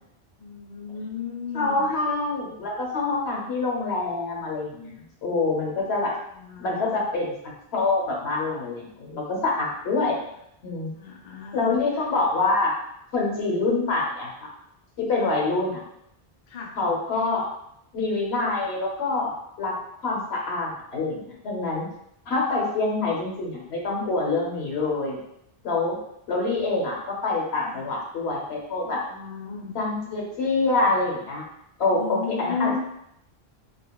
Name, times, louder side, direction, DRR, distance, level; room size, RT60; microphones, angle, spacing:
voice 1, 0.4-1.9 6.3-7.1 10.9-11.8 15.2-15.4 16.5-16.8 27.6-27.9 29.1-29.8 31.9-32.8, left 6 dB, 55° left, -1 dB, 0.7 m, -34 dB
voice 2, 1.5-4.9 5.2-6.1 6.6-7.3 7.7-10.2 10.6-10.9 11.5-12.7 13.1-14.5 15.0-15.8 16.8-17.5 17.9-19.7 20.0-21.9 22.3-25.2 25.6-26.0 26.3-29.0 29.7-31.4 31.8-32.8, left 3 dB, 80° left, -2 dB, 1.1 m, -26 dB
5.3 x 2.4 x 2.2 m, 0.77 s
omnidirectional pair, 1.1 m